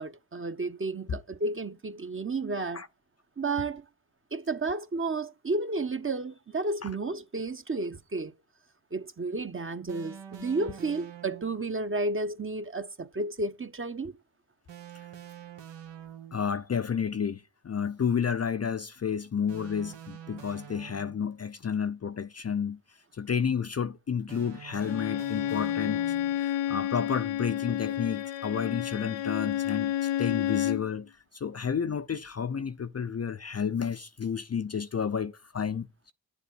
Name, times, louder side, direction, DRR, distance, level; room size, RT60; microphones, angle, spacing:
voice 1, 0.0-2.8 3.4-3.8 4.3-8.3 8.9-14.1, right 3 dB, 25° right, 1.1 m, -32 dB
sound 1, 9.9-11.7 14.7-16.6 19.5-21.4 24.3-26.5, right 9 dB, 70° right, 1.3 m, -46 dB
voice 2, 16.3-22.8 23.1-26.0 26.4-35.9, left 7 dB, 35° left, 0.6 m, -31 dB
Bowed string instrument, 24.8-30.9, left 12 dB, 75° left, 0.6 m, -30 dB
10.0 x 7.1 x 7.7 m
supercardioid pair, 50°, 46 cm